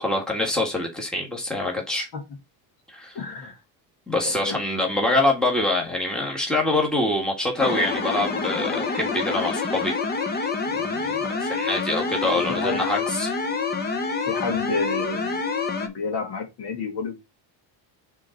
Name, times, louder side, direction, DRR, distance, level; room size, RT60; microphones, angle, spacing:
voice 1, 0.0-2.1 2.9-3.2 4.1-10.0 10.7-13.3, left 2 dB, ahead, 1.7 m, -25 dB
voice 2, 3.1-3.6 4.2-4.6 12.5-12.9 14.3-15.4 15.8-17.2, left 4 dB, 55° left, 2.3 m, -30 dB
sound 1, 7.6-15.9, left 4 dB, 20° left, 0.8 m, -27 dB
6.1 x 3.9 x 4.5 m
cardioid pair, 145°, 46 cm